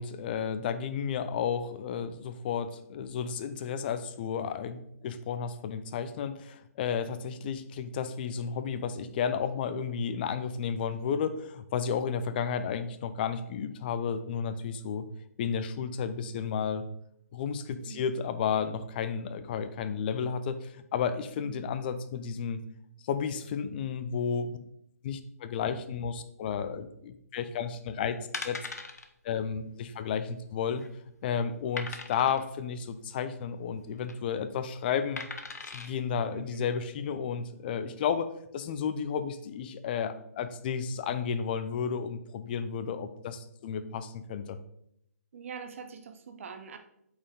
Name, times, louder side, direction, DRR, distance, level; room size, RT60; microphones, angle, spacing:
voice 1, 0.0-15.0 15.4-16.8 17.3-22.6 23.0-24.6 25.0-28.6 29.2-30.8 31.2-35.2 35.7-44.6, left 7 dB, 35° left, 11 dB, 0.6 m, -32 dB
sound 1, 27.7-27.9 28.3-29.1 29.4-29.6 29.8-29.9 30.5-31.0 31.8-32.4 33.8-34.1 35.2-35.9 36.5-36.6, left 3 dB, 80° left, 0.9 m, -39 dB
voice 2, 36.3-36.7 45.3-46.8, right 6 dB, 55° right, 6 dB, 1.0 m, -44 dB
8.4 x 4.5 x 3.7 m, 0.76 s
hypercardioid pair, 145°, 9 cm